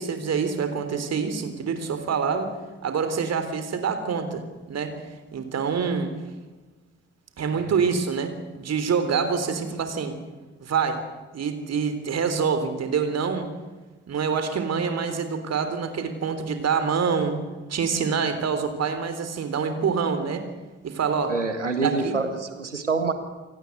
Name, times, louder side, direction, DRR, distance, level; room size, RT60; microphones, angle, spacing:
voice 1, 0.0-2.5 2.8-6.1 7.4-10.1 10.6-11.0 11.3-13.5 14.1-17.4 17.7-20.4 20.8-21.3 21.8-22.2, right 6 dB, 45° right, 9 dB, 3.6 m, -26 dB
voice 2, 21.3-23.1, right 4 dB, 85° right, 9 dB, 1.7 m, -26 dB
27.0 x 19.0 x 8.0 m, 1.3 s
figure-of-eight pair, 40°, 35 cm